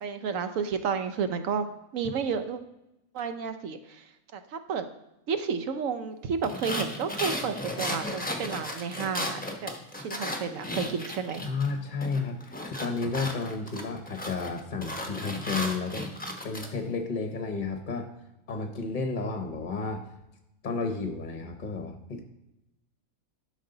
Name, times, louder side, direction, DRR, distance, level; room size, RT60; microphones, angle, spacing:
voice 1, 0.0-2.6 3.1-4.0 4.3-4.8 5.3-11.4, right 6 dB, 70° right, 9 dB, 1.1 m, -31 dB
sound 1, 6.4-11.7 12.0-16.7, left 1 dB, 10° left, 0.7 m, -35 dB
voice 2, 11.4-16.1 16.4-18.1 18.5-20.0 20.6-22.2, left 4 dB, 40° left, 5 dB, 0.9 m, -32 dB
11.5 x 5.3 x 3.9 m, 0.90 s
omnidirectional pair, 1.5 m